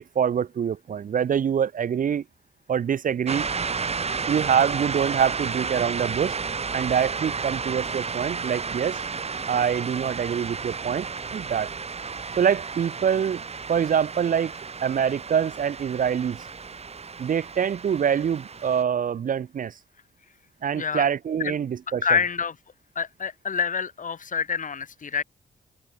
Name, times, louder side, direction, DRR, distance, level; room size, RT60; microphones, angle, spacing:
voice 1, 0.0-2.2 2.7-3.5 4.3-6.4 6.7-9.0 9.5-11.7 12.4-13.4 13.7-14.5 14.8-16.4 17.2-19.7 20.6-22.0, right 8 dB, 55° right, 0.6 m, -25 dB
sound 1, 3.3-18.8, right 5 dB, 40° right, 1.2 m, -32 dB
voice 2, 20.7-21.1 21.4-21.6 22.0-22.6 23.0-25.2, left 6 dB, 55° left, 2.0 m, -27 dB
cardioid pair, 70°, 16 cm